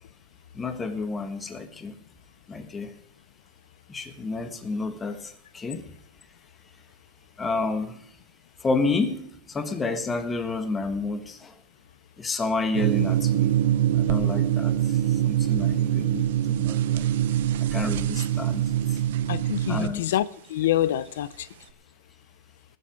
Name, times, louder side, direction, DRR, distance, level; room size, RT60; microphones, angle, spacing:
voice 1, 0.5-1.9 2.5-2.9 3.9-5.9 7.4-8.0 8.6-11.5 12.2-13.5 14.0-14.7 15.2-17.1 17.7-18.6 19.7-20.0, left 3 dB, 15° left, 1.5 m, -30 dB
sound 1, 12.7-19.9, right 11 dB, 75° right, 0.6 m, -24 dB
voice 2, 19.3-21.5, left 12 dB, 85° left, 0.5 m, -26 dB
19.5 x 7.6 x 5.2 m
supercardioid pair, 150°, 0 cm